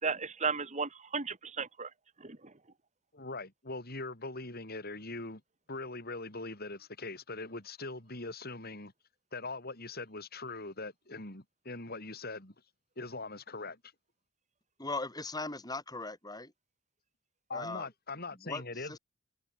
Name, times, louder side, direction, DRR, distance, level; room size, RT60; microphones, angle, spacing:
voice 1, 0.0-1.9 2.2-2.4, right 5 dB, 35° right, 2.7 m, -34 dB
voice 2, 3.1-5.4 5.7-8.9 9.3-12.5 13.0-13.8 17.5-19.0, left 3 dB, 50° left, 6.4 m, -41 dB
voice 3, 14.8-16.5 17.5-17.9 18.3-19.0, left 3 dB, 20° left, 6.9 m, -39 dB
head